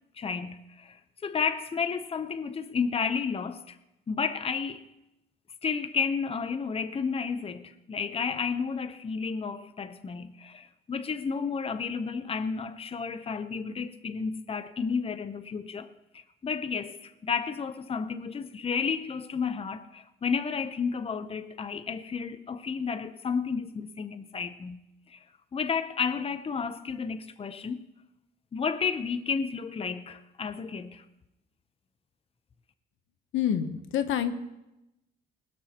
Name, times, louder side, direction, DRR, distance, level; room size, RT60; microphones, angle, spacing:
voice 1, 0.2-3.8 4.1-4.8 5.6-24.8 25.1-25.2 25.5-27.8 28.5-31.0, left 5 dB, 30° left, 0.7 m, -32 dB
voice 2, 33.3-34.3, left 9 dB, 80° left, 0.9 m, -27 dB
20.5 x 12.5 x 2.9 m
cardioid pair, 90°, 20 cm